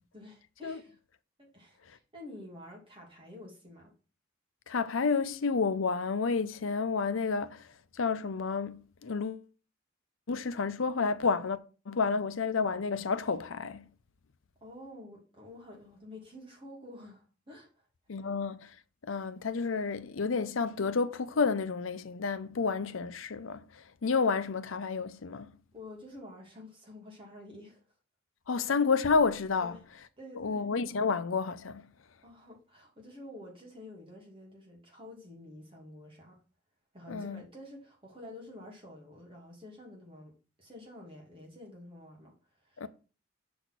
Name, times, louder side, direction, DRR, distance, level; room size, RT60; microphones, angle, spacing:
voice 1, 0.1-0.9 1.4-3.9 14.6-17.7 18.2-18.3 25.7-27.8 28.5-28.6 29.6-29.8 30.2-30.7 32.2-36.4 36.9-40.3 40.6-42.9, left 1 dB, 25° right, 2.4 m, -49 dB
voice 2, 4.7-7.7 7.9-9.4 10.3-11.6 11.9-13.8 18.1-18.7 19.0-25.5 28.5-29.8 30.4-31.9 37.1-37.4 42.8-42.9, left 4 dB, 75° left, 0.6 m, -30 dB
6.8 x 4.3 x 6.0 m
head